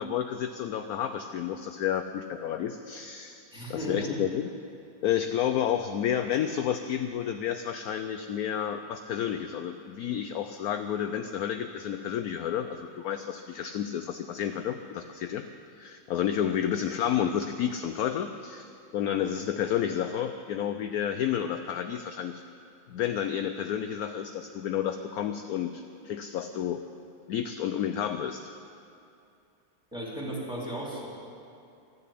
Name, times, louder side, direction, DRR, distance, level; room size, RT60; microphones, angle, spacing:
voice 1, 0.0-3.4 3.7-4.5 5.0-15.4 15.8-22.4 22.9-26.8 27.3-28.4, left 9 dB, 70° left, 8 dB, 0.9 m, -30 dB
voice 2, 3.5-4.2 29.9-31.1, right 1 dB, ahead, -4 dB, 2.9 m, -35 dB
12.5 x 10.5 x 8.5 m, 2.6 s
omnidirectional pair, 2.0 m